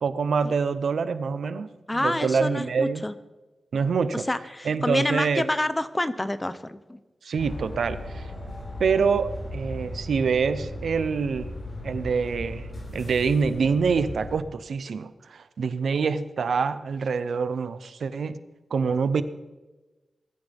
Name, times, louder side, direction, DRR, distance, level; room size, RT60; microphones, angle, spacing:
voice 1, 0.0-3.0 3.7-4.3 4.6-5.5 7.2-8.3 8.8-11.5 11.8-12.7 12.9-18.4 18.7-19.2, right 5 dB, 85° right, 12 dB, 0.7 m, -26 dB
voice 2, 1.9-3.1 4.1-7.0, left 1 dB, 15° left, 12 dB, 0.7 m, -28 dB
sound 1, 7.4-14.4, left 1 dB, 45° left, 5.6 m, -37 dB
21.0 x 13.0 x 3.5 m, 1.1 s
wide cardioid pair, 140°, 0 cm